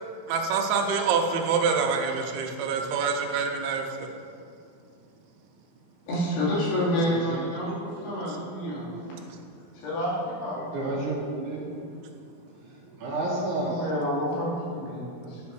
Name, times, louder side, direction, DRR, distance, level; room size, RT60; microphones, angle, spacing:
voice 1, 0.3-4.1 8.1-8.2 8.6-9.2, right 5 dB, 85° right, 2 dB, 2.6 m, -26 dB
voice 2, 6.1-8.9 9.8-11.0 13.6-15.4, equal, 90° left, -8 dB, 4.3 m, -29 dB
voice 3, 7.0-7.4 10.7-11.7 13.0-13.8, right 2 dB, 65° right, -3 dB, 2.1 m, -30 dB
9.2 x 4.3 x 6.1 m, 2.4 s
omnidirectional pair, 4.4 m